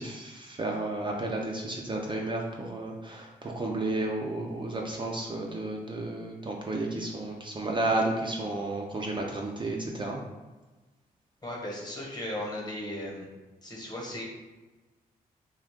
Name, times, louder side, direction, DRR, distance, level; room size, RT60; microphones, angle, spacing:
voice 1, 0.0-10.2, right 2 dB, 30° right, -1 dB, 0.5 m, -32 dB
voice 2, 11.4-13.3 13.6-14.2, left 1 dB, 25° left, -2 dB, 1.1 m, -36 dB
2.4 x 2.3 x 3.5 m, 1.2 s
supercardioid pair, 50°, 16 cm